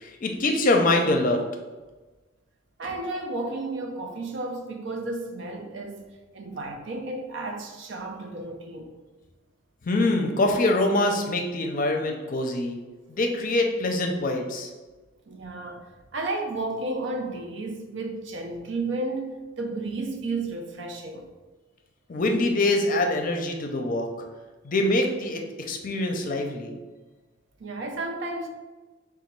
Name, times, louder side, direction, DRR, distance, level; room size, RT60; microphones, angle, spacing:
voice 1, 0.0-1.4 9.8-12.8 13.1-14.7 22.1-24.1 24.6-26.8, left 2 dB, 45° left, 0.6 m, -24 dB
voice 2, 2.8-8.9 15.3-21.3 27.6-28.5, right 2 dB, 65° right, 0.6 m, -33 dB
3.8 x 2.4 x 4.5 m
head